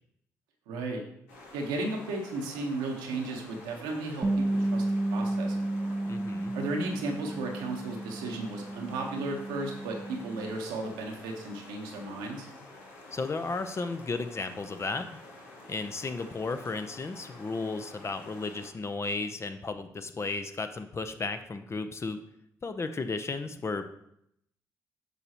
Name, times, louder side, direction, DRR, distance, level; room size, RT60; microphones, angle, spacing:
voice 1, 0.7-1.0 1.5-4.8 5.1-6.0 6.5-12.5, right 2 dB, 80° right, 1 dB, 1.1 m, -35 dB
sound 1, 1.3-18.7, left 2 dB, 90° left, 1.1 m, -50 dB
Bass guitar, 4.2-10.5, right 1 dB, 25° right, 0.7 m, -32 dB
voice 2, 6.1-6.5 13.1-15.1 15.7-22.2 22.6-23.8, left 3 dB, 35° left, 8 dB, 0.7 m, -34 dB
8.2 x 5.5 x 3.0 m, 0.75 s
hypercardioid pair, 45°, 8 cm